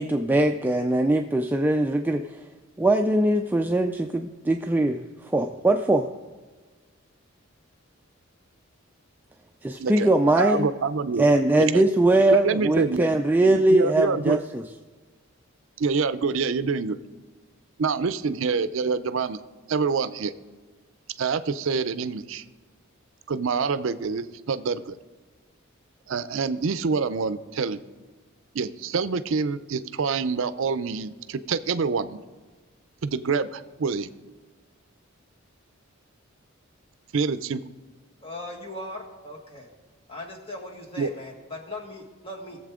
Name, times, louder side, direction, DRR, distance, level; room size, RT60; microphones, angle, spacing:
voice 1, 0.0-2.4 2.8-6.1 9.6-10.7 11.2-14.6, right 1 dB, 10° right, 4 dB, 0.3 m, -21 dB
voice 2, 10.4-11.2 11.7-11.8 12.3-13.0 13.4-14.4 15.8-17.0 17.8-19.4 19.7-20.3 21.2-22.4 23.3-24.9 26.1-27.8 28.5-32.2 33.0-34.1 37.1-37.6 41.0-41.1, right 5 dB, 70° right, 14 dB, 0.5 m, -26 dB
voice 3, 38.2-39.7 40.1-42.6, left 1 dB, 30° left, 1 dB, 1.7 m, -39 dB
19.5 x 7.5 x 3.7 m, 1.3 s
head